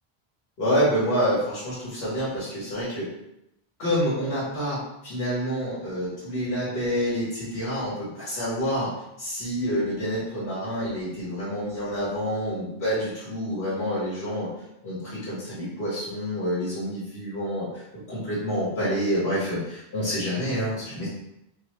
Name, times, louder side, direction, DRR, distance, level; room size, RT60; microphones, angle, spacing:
voice 1, 0.6-3.1 3.8-14.5 14.8-21.1, equal, 85° left, -9 dB, 1.6 m, -28 dB
4.7 x 2.2 x 3.1 m, 0.84 s
omnidirectional pair, 1.1 m